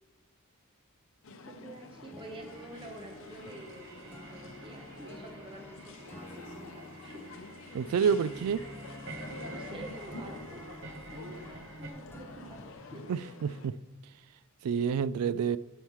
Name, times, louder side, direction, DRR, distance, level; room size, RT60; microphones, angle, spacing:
sound 1, 1.2-13.7, left 3 dB, 60° left, 0.7 m, -48 dB
voice 1, 1.4-7.3 9.4-10.8 11.1-13.0, right 2 dB, 20° right, 1.0 m, -48 dB
sound 2, 2.0-12.7, left 1 dB, 10° left, 0.6 m, -50 dB
sound 3, 2.2-11.9, right 3 dB, 55° right, 0.9 m, -50 dB
voice 2, 7.7-8.6 13.1-13.8 14.6-15.6, right 7 dB, 85° right, 0.3 m, -28 dB
8.8 x 7.3 x 3.1 m
head